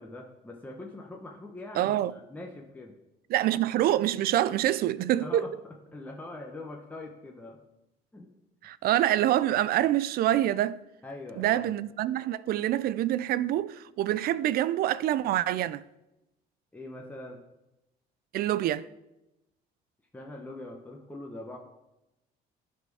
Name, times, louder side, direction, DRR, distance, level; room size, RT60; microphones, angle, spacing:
voice 1, 0.0-3.0 3.5-3.6 5.2-5.5 5.9-7.6 8.1-8.3 11.0-11.7 16.7-17.4 20.1-21.6, left 2 dB, 10° left, 0.9 m, -43 dB
voice 2, 1.8-2.1 3.3-5.5 8.6-10.8 11.4-15.8 18.3-18.9, right 13 dB, 65° right, 0.4 m, -26 dB
11.5 x 4.3 x 4.8 m
cardioid pair, 110°, 17 cm